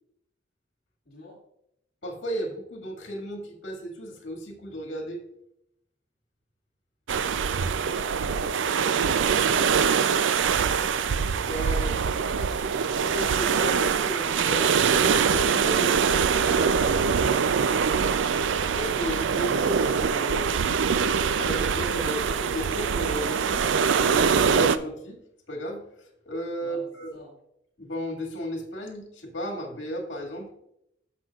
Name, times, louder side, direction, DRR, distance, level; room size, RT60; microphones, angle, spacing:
voice 1, 1.1-1.4 8.2-10.3 16.4-17.6 26.6-27.4, left 1 dB, 55° left, -9 dB, 2.4 m, -42 dB
voice 2, 2.0-5.2 11.4-12.0 12.9-14.7 15.3-16.5 18.7-20.5 21.4-23.6 23.9-25.2 25.5-27.1 27.8-30.5, equal, 80° left, 1 dB, 2.1 m, -34 dB
sound 1, 7.1-24.8, right 6 dB, 75° right, 0.4 m, -23 dB
14.0 x 6.0 x 2.4 m, 0.77 s
head